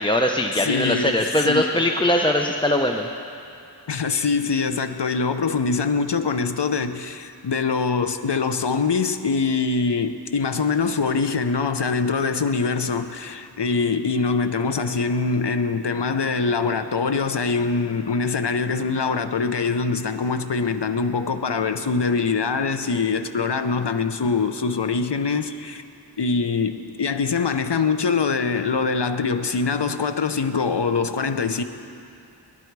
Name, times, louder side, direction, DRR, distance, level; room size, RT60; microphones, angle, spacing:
voice 1, 0.0-3.1, left 1 dB, 10° left, 0.7 m, -21 dB
voice 2, 0.5-1.1 1.4-1.8 3.9-25.8 26.2-31.6, left 4 dB, 75° left, 0.8 m, -23 dB
24.5 x 11.0 x 4.7 m
wide cardioid pair, 45°, 42 cm